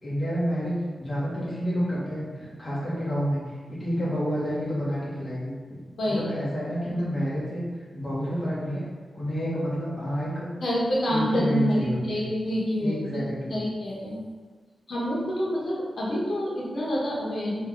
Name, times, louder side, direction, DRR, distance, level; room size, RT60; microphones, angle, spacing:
voice 1, 0.0-3.4 3.7-5.8 6.0-7.6 7.9-8.8 9.1-10.5 11.0-12.2 12.8-13.6, equal, 30° left, -8 dB, 1.1 m, -29 dB
voice 2, 10.6-14.2 14.9-17.6, equal, 70° left, -6 dB, 1.4 m, -27 dB
3.7 x 3.1 x 4.6 m, 1.5 s
wide cardioid pair, 140°, 0 cm